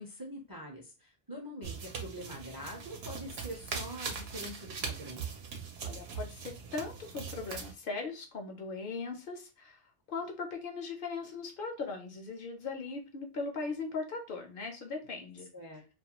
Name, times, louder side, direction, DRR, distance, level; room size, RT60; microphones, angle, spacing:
voice 1, 0.0-5.2 15.5-15.8, equal, 30° right, -2 dB, 0.5 m, -44 dB
sound 1, 1.6-7.7, right 5 dB, 80° right, 0.8 m, -41 dB
voice 2, 5.8-9.8 10.1-15.5, left 4 dB, 65° left, 3 dB, 0.7 m, -39 dB
2.3 x 2.2 x 2.8 m, 0.31 s
omnidirectional pair, 1.0 m